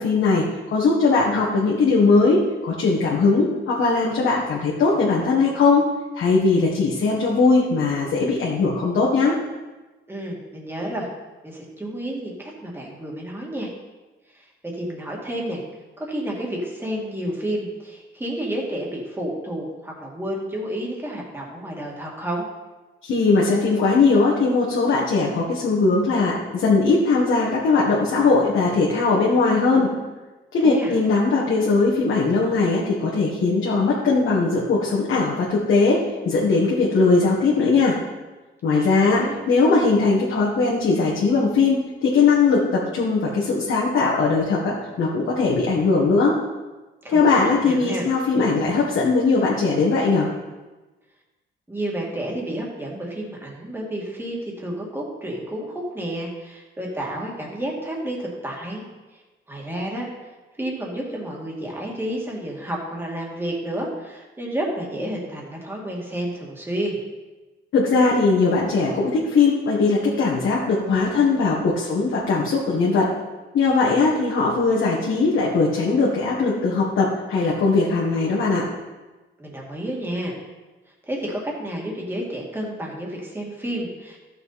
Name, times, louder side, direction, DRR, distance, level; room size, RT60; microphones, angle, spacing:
voice 1, 0.0-5.9 6.1-9.4 23.0-29.9 30.5-38.0 38.6-46.3 47.1-50.3 67.7-73.1 73.5-78.7, left 4 dB, 70° left, -4 dB, 1.8 m, -20 dB
voice 2, 10.1-11.1 11.4-13.7 14.3-15.6 16.0-22.5 26.1-26.3 30.6-31.0 38.6-39.4 47.0-48.1 51.7-58.8 59.1-59.2 59.5-60.1 60.6-67.0 79.4-80.4 81.0-84.2, right 1 dB, 10° right, -2 dB, 2.2 m, -30 dB
14.0 x 6.8 x 4.2 m, 1.2 s
wide cardioid pair, 145°, 21 cm